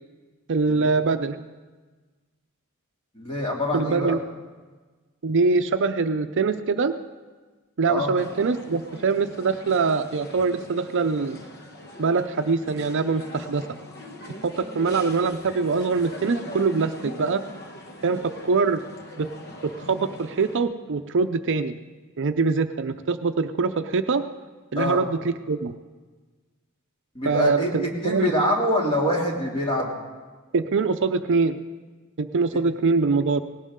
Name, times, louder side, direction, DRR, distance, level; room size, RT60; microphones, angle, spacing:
voice 1, 0.5-1.4 3.7-4.2 5.2-6.9 7.8-11.4 12.0-13.7 14.4-17.4 18.0-18.8 19.2-19.3 19.6-21.7 22.2-24.2 24.7-25.7 27.2-28.3 30.5-31.6 32.2-33.4, right 4 dB, 55° right, 9 dB, 0.6 m, -23 dB
voice 2, 3.1-4.2 7.9-8.1 24.7-25.0 27.1-29.9, left 1 dB, 25° left, -2 dB, 2.6 m, -25 dB
sound 1, 8.1-20.6, left 1 dB, 50° left, 1.4 m, -41 dB
18.5 x 17.0 x 3.7 m, 1.3 s
head